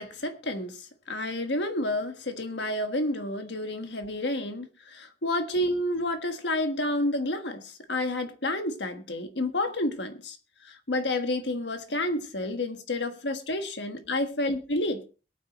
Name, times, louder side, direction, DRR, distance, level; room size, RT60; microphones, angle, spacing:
voice 1, 0.0-10.4 10.6-15.0, left 1 dB, 75° left, 1.5 m, -30 dB
22.5 x 9.2 x 3.0 m
head